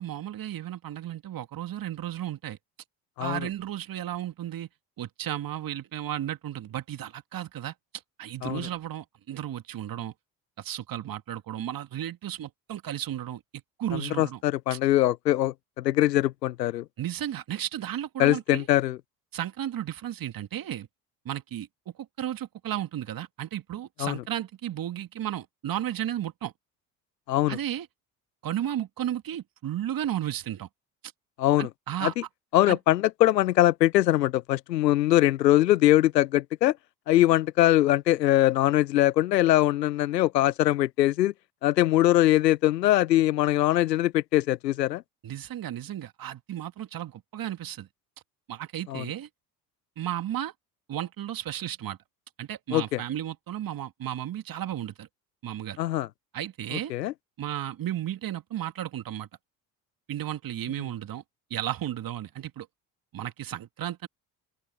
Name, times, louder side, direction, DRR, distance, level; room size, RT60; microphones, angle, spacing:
voice 1, 0.0-2.6 3.2-4.7 5.0-7.7 8.2-10.1 10.6-14.4 14.7-14.8 17.0-18.7 19.3-20.9 21.2-21.7 22.2-26.5 27.5-27.9 28.4-30.7 31.6-32.1 32.7-32.8 45.2-47.9 48.5-49.3 50.0-50.5 50.9-52.0 52.4-55.1 55.4-55.8 56.3-56.9 57.4-59.3 60.1-61.2 61.5-62.7 63.1-64.1, right 11 dB, 45° right, 2.4 m, -34 dB
voice 2, 13.9-16.8 18.2-19.0 24.0-24.1 27.3-27.6 31.4-31.7 32.0-32.1 32.5-36.8 37.1-41.3 41.6-45.0 48.9-49.0 52.7-53.0 55.8-56.1 56.9-57.1, left 14 dB, 90° left, 0.7 m, -22 dB
open air
hypercardioid pair, 60°, 48 cm